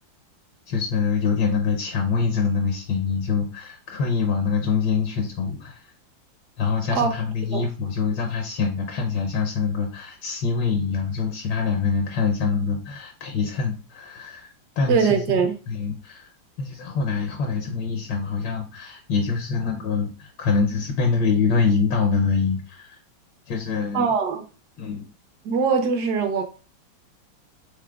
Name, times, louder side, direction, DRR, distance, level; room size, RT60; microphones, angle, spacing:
voice 1, 0.7-5.9 6.6-15.4 15.7-16.3 16.6-23.0 23.5-24.1 24.8-25.0, left 5 dB, 75° left, 1.3 m, -25 dB
voice 2, 14.9-15.6 23.9-24.4 25.4-26.4, right 6 dB, 65° right, 1.2 m, -22 dB
4.9 x 3.6 x 2.3 m
omnidirectional pair, 2.1 m